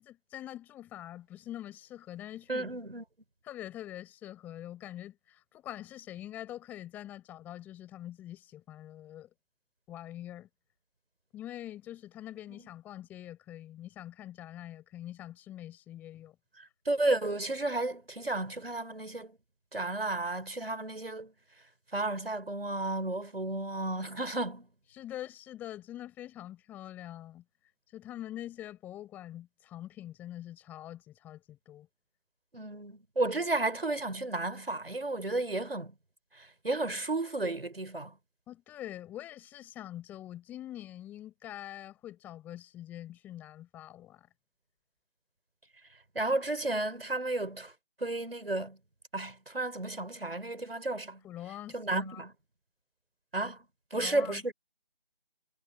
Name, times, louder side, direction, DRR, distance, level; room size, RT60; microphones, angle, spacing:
voice 1, 0.0-2.7 3.4-9.3 9.9-10.5 11.3-16.4 24.9-27.4 27.9-31.9 38.5-44.3 51.2-52.2 53.9-54.5, left 12 dB, 5° left, 5.8 m, -44 dB
voice 2, 2.5-3.0 12.6-12.7 16.9-19.3 19.7-21.3 21.9-24.7 32.5-35.9 36.4-38.1 46.1-47.7 48.0-48.8 49.1-51.2 51.7-52.3 53.3-53.6 53.9-54.5, right 2 dB, 75° right, 5.7 m, -32 dB
figure-of-eight pair, 165°, 30 cm